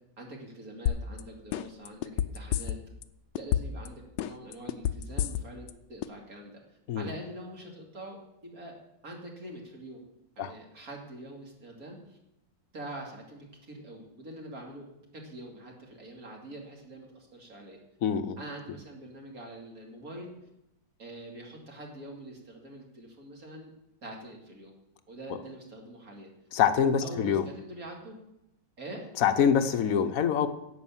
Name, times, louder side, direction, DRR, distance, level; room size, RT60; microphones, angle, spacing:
voice 1, 0.2-2.7 3.4-6.6 7.0-8.7 9.0-10.0 10.4-12.2 12.7-14.9 15.1-17.8 18.4-20.3 21.0-23.7 24.0-24.7 25.1-26.3 27.0-28.2 28.8-29.1, right 1 dB, 50° right, 0 dB, 2.8 m, -44 dB
sound 1, 0.9-1.2 1.5-3.0 3.4-3.9 4.2-5.7 6.0-6.1, left 10 dB, 75° left, 1.3 m, -28 dB
voice 2, 18.0-18.4 26.5-27.5 29.2-30.5, left 7 dB, 55° left, 10 dB, 1.2 m, -25 dB
11.0 x 8.5 x 7.3 m, 0.87 s
omnidirectional pair, 2.0 m